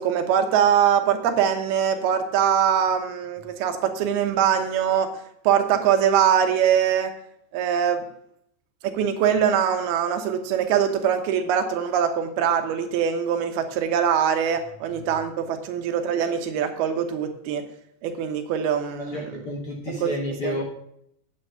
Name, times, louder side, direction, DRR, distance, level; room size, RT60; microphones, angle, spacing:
voice 1, 0.0-5.1 5.5-7.1 7.5-8.1 8.8-17.6 18.0-19.4 19.9-20.1 20.4-20.5, right 8 dB, 85° right, 6 dB, 3.0 m, -22 dB
voice 2, 14.9-15.2 19.0-20.6, left 1 dB, 50° left, -1 dB, 1.8 m, -31 dB
8.8 x 8.6 x 5.5 m, 0.72 s
omnidirectional pair, 4.3 m